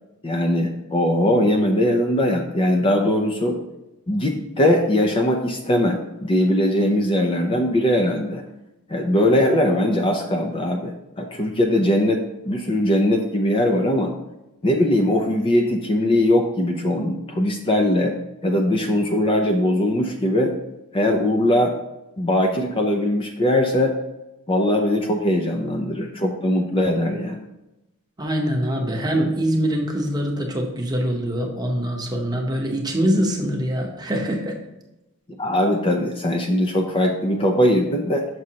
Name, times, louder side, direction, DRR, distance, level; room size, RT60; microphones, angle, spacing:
voice 1, 0.2-3.6 4.1-8.4 8.9-14.1 14.6-18.2 18.4-20.5 20.9-21.7 22.2-23.9 24.5-27.4 35.4-38.3, left 1 dB, 25° left, 3 dB, 0.5 m, -20 dB
voice 2, 28.2-34.6, equal, 20° right, 1 dB, 0.9 m, -23 dB
6.3 x 6.1 x 2.8 m, 0.95 s
head